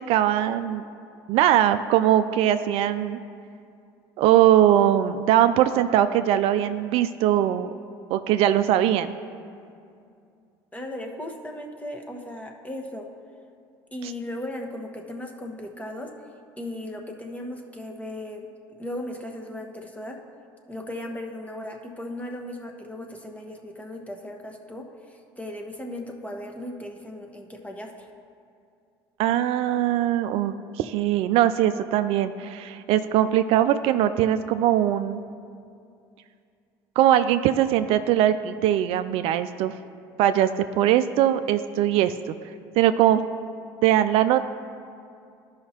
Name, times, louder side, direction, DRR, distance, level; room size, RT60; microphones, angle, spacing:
voice 1, 0.1-0.8 1.3-3.2 4.2-7.7 8.1-9.1 14.0-14.1 29.2-35.2 37.0-39.7 40.2-42.3 42.8-43.2 43.8-44.5, right 11 dB, 65° right, 11 dB, 0.4 m, -21 dB
voice 2, 10.7-13.1 13.9-16.1 16.6-18.5 18.8-20.2 20.7-28.1, left 1 dB, 15° left, 2 dB, 1.2 m, -36 dB
14.0 x 5.6 x 2.9 m, 2.4 s
hypercardioid pair, 70°, 11 cm